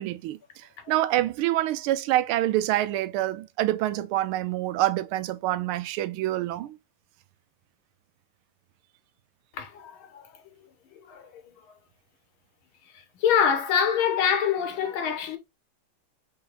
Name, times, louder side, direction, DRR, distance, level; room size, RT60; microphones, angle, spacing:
voice 1, 0.0-6.8, right 14 dB, 90° right, 1.5 m, -26 dB
voice 2, 9.6-10.3 11.1-11.2 13.2-15.4, left 8 dB, 80° left, 1.7 m, -25 dB
4.9 x 3.7 x 2.8 m
omnidirectional pair, 2.3 m